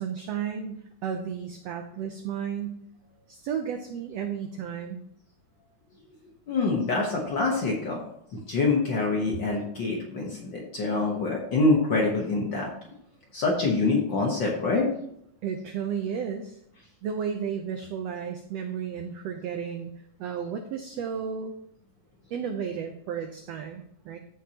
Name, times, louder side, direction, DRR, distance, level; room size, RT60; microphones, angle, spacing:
voice 1, 0.0-2.8 3.3-5.0 15.4-16.6 17.0-19.9 20.2-21.5 22.3-24.2, right 7 dB, 90° right, 5 dB, 1.4 m, -33 dB
voice 2, 6.5-8.0 8.3-12.7 13.3-14.9, left 3 dB, 65° left, -1 dB, 1.1 m, -25 dB
14.5 x 5.6 x 2.9 m, 0.71 s
omnidirectional pair, 3.8 m